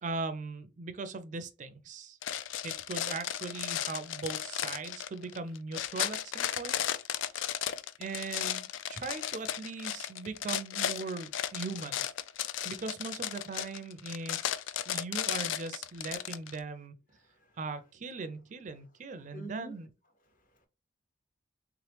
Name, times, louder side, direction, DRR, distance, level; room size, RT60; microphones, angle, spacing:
voice 1, 0.0-2.2 2.6-6.8 8.0-12.0 12.6-14.5 14.9-16.9 17.6-19.9, right 3 dB, 40° right, 0.4 m, -39 dB
sound 1, 2.2-16.6, left 10 dB, 75° left, 0.3 m, -35 dB
voice 2, 17.2-17.6 18.7-18.8 19.1-19.8 20.2-20.7, right 1 dB, 45° left, 0.8 m, -49 dB
3.5 x 3.0 x 3.1 m
head